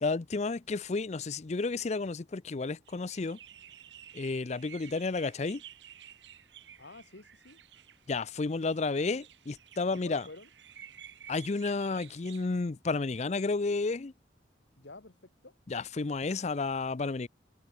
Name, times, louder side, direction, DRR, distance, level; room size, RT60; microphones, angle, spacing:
voice 1, 0.0-3.4 4.1-5.6 8.1-10.2 11.3-14.1 15.7-17.3, left 3 dB, 40° left, 0.5 m, -31 dB
sound 1, 2.9-12.7, right 10 dB, 75° right, 1.3 m, -53 dB
voice 2, 6.8-7.6 9.9-10.5 14.8-15.5, left 2 dB, 75° left, 2.3 m, -50 dB
head